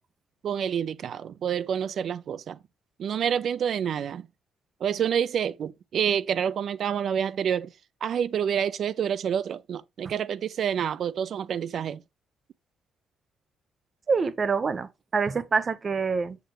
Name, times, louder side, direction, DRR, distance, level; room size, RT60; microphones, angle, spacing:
voice 1, 0.4-2.6 3.0-4.3 4.8-7.7 8.0-12.0, right 8 dB, 60° right, 0.5 m, -28 dB
voice 2, 14.1-16.4, right 5 dB, 40° right, 1.0 m, -26 dB
7.7 x 6.9 x 3.1 m
cardioid pair, 90°, 0 cm